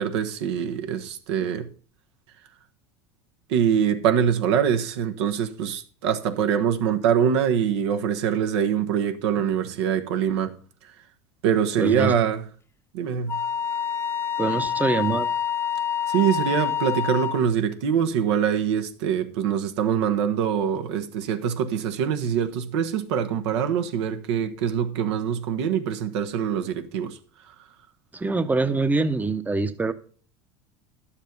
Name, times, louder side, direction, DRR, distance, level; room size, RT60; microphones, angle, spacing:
voice 1, 0.0-1.7 3.5-10.5 10.8-10.9 11.4-12.4 12.9-13.4 16.1-27.2, right 8 dB, 80° right, 1.2 m, -24 dB
voice 2, 11.8-12.1 14.4-15.3 28.1-29.9, right 3 dB, 10° right, 0.8 m, -24 dB
Wind instrument woodwind instrument, 13.3-17.5, left 8 dB, 20° left, 0.8 m, -27 dB
10.5 x 7.3 x 5.4 m
hypercardioid pair, 90°, 14 cm